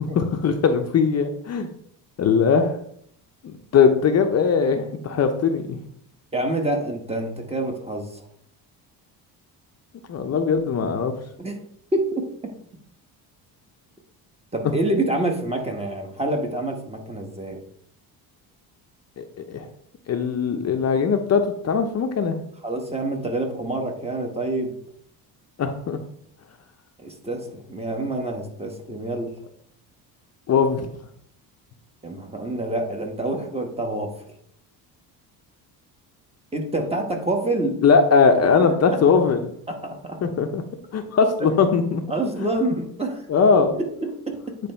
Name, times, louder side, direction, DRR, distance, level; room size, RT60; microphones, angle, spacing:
voice 1, 0.2-1.7 2.2-2.7 3.4-5.8 10.1-11.1 19.2-19.7 20.1-22.4 25.6-26.0 30.5-30.8 37.8-39.5 40.2-40.6 40.9-42.0 42.4-42.5 43.3-43.7, left 5 dB, 40° left, 6 dB, 0.7 m, -20 dB
voice 2, 6.3-8.3 11.4-11.6 11.9-12.3 14.5-17.6 22.6-24.7 27.0-29.4 32.0-34.1 36.5-37.8 38.6-39.0 39.7-40.2 41.4-41.6 42.1-43.3 43.5-44.6, right 2 dB, 15° right, 3 dB, 1.1 m, -27 dB
8.6 x 3.3 x 4.4 m, 0.67 s
cardioid pair, 110°, 39 cm